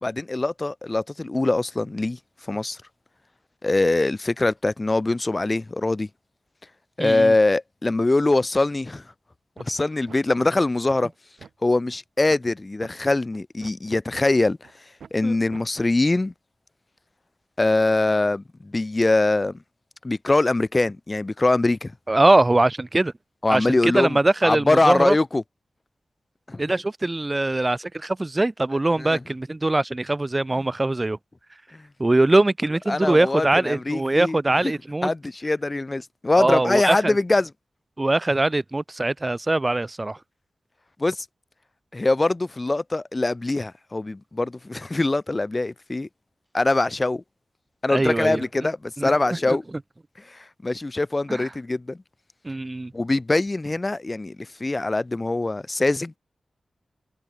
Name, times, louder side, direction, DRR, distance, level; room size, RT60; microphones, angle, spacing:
voice 1, 0.0-2.2 2.5-2.8 3.6-6.1 7.0-9.0 9.6-11.1 11.6-14.6 15.1-16.3 17.6-19.6 20.0-21.9 23.4-24.2 24.4-25.4 26.5-26.6 29.0-29.2 31.7-31.8 32.9-34.4 34.6-34.7 35.0-37.5 41.0-41.3 41.9-46.1 46.5-47.2 47.8-49.6 50.3-52.0 52.9-56.2, left 2 dB, 30° left, 1.6 m, -23 dB
voice 2, 7.0-7.3 15.2-15.3 22.1-23.1 23.5-25.2 26.6-31.2 32.0-35.1 36.4-37.1 38.0-40.2 47.9-48.5 49.0-49.6 51.3-51.5 52.4-52.9, right 2 dB, 25° right, 1.3 m, -22 dB
sound 1, 9.6-9.7 10.1-10.2 10.6-11.5 11.9-12.0 12.3-12.5 12.8-12.9 13.3-14.2 14.6-14.7 15.0-15.2 15.5-15.6, right 6 dB, 90° right, 4.5 m, -44 dB
cardioid pair, 60°, 0 cm